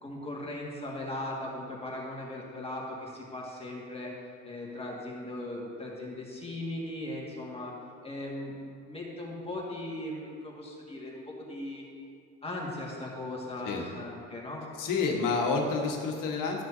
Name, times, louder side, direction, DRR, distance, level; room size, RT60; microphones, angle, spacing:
voice 1, 0.0-4.1 4.4-7.8 8.0-11.8 12.4-14.7, left 1 dB, 15° left, -3 dB, 2.0 m, -38 dB
voice 2, 14.8-16.6, left 4 dB, 55° left, 1 dB, 1.6 m, -29 dB
13.0 x 6.2 x 2.8 m, 2.3 s
hypercardioid pair, 70°, 38 cm